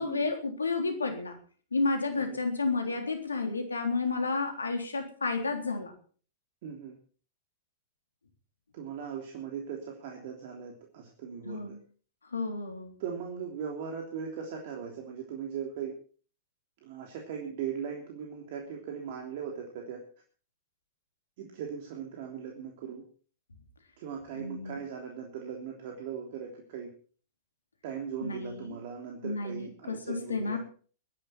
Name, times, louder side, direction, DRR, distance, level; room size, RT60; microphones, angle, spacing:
voice 1, 0.0-1.4 1.7-5.9 11.4-11.8 12.3-12.9 24.3-24.8 28.2-28.8 29.2-30.6, left 3 dB, 85° left, 5 dB, 3.5 m, -31 dB
voice 2, 6.6-7.0 8.7-11.8 13.0-15.9 16.8-20.0 21.4-23.0 24.0-26.9 27.8-30.6, right 7 dB, 55° right, 1 dB, 3.2 m, -39 dB
22.0 x 11.0 x 4.4 m, 0.41 s
figure-of-eight pair, 105°, 0 cm